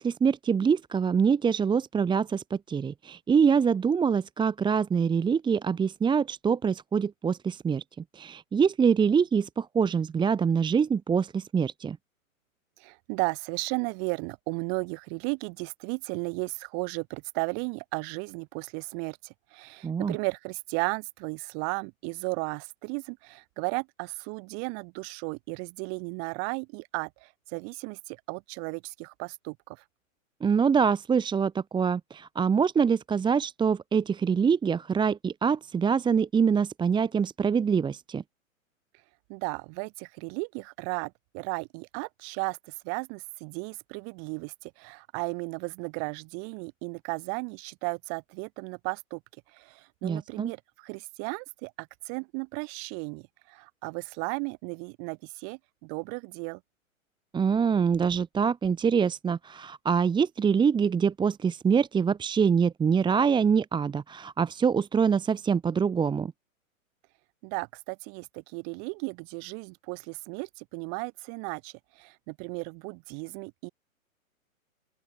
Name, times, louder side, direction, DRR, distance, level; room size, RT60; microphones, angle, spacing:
voice 1, 0.0-7.8 8.1-12.0 19.8-20.2 30.4-38.2 50.0-50.5 57.3-66.3, right 6 dB, 10° right, 1.7 m, -25 dB
voice 2, 12.8-29.8 39.3-49.2 49.5-56.6 67.4-73.7, right 40 dB or more, 35° right, 7.9 m, -35 dB
open air
hypercardioid pair, 130°, 41 cm